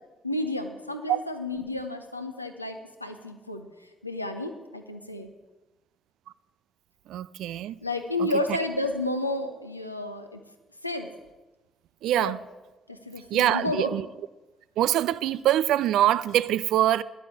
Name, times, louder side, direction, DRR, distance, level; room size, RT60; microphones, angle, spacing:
voice 1, 0.2-3.7 4.0-5.3 7.8-10.4 10.8-11.1 12.1-12.4 12.9-14.0, left 2 dB, 90° left, 0.7 m, -31 dB
voice 2, 7.1-7.8 8.2-8.3 12.0-12.4 13.3-14.1 14.8-17.0, right 12 dB, 60° right, 0.4 m, -24 dB
10.5 x 7.8 x 8.6 m
figure-of-eight pair, 45°, 0 cm